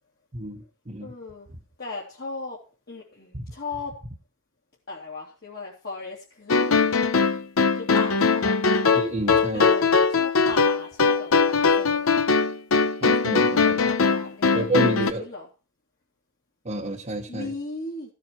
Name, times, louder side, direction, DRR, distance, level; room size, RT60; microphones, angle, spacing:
voice 1, 0.3-1.1 3.3-3.5 8.4-8.5 8.9-9.7 13.0-13.9 14.5-15.3 16.6-17.5, right 2 dB, 35° right, 1 dB, 1.2 m, -29 dB
voice 2, 1.0-1.5 1.8-3.9 4.9-6.9 7.7-8.5 9.5-12.1 13.4-14.6 15.1-15.5 17.3-18.1, left 3 dB, 50° left, -4 dB, 2.8 m, -37 dB
sound 1, 6.5-15.1, left 4 dB, 75° left, 0.8 m, -21 dB
14.5 x 7.5 x 4.6 m, 0.32 s
head